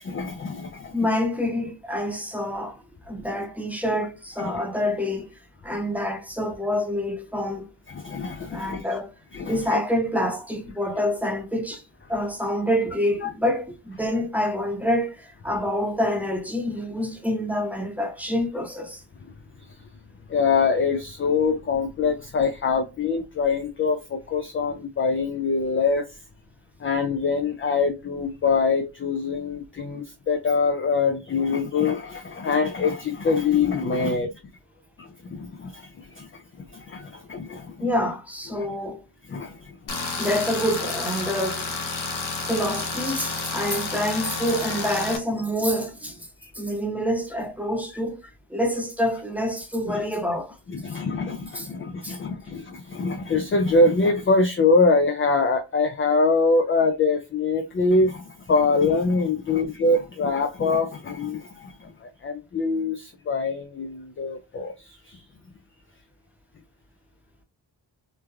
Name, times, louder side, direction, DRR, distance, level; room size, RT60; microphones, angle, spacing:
voice 1, 0.0-0.9 4.4-4.6 7.9-8.8 9.3-9.8 13.2-13.3 20.3-26.1 26.8-34.3 35.0-36.4 36.7-37.9 38.5-38.7 39.3-39.7 46.4-46.5 49.9-50.0 50.7-65.2, left 4 dB, 30° left, 0.4 m, -24 dB
voice 2, 0.9-5.3 5.6-7.7 8.1-8.2 8.5-9.2 9.4-11.8 12.1-19.0 37.8-39.0 40.1-41.7 42.5-46.3 46.5-48.2 48.5-50.6 51.5-51.7 52.0-52.2, equal, 5° right, 0.8 m, -27 dB
Tools, 39.9-45.2, left 4 dB, 45° left, 0.8 m, -30 dB
3.2 x 2.3 x 2.2 m
cardioid pair, 50°, 45 cm